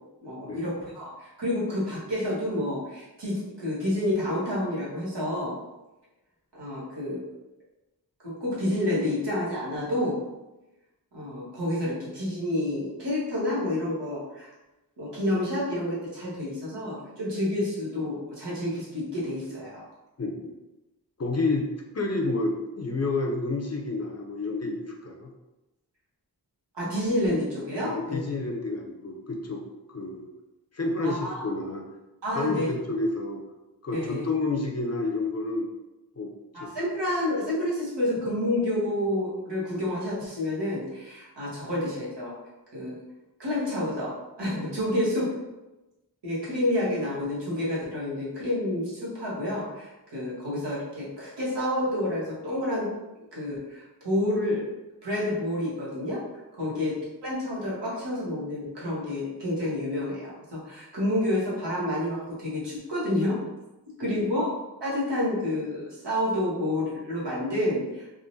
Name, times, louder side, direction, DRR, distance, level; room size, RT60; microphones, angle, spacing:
voice 1, 0.2-5.6 6.5-7.2 8.2-10.2 11.1-14.5 15.0-19.8 26.7-28.3 31.0-31.5 32.2-32.7 33.9-34.2 36.5-42.4 42.7-43.0 43.4-45.4 46.2-52.9 53.3-54.7 55.0-56.2 56.5-63.4 64.0-64.5 64.8-68.1, left 1 dB, 90° right, -7 dB, 1.2 m, -29 dB
voice 2, 20.2-20.5 21.2-21.7 21.9-25.3 27.9-29.6 29.9-30.3 30.7-31.8 32.3-33.4 33.8-35.7 36.2-36.8 56.7-56.8 64.0-64.2, left 3 dB, 40° left, 1 dB, 0.5 m, -30 dB
3.6 x 2.1 x 2.6 m, 1.0 s
wide cardioid pair, 50°, 41 cm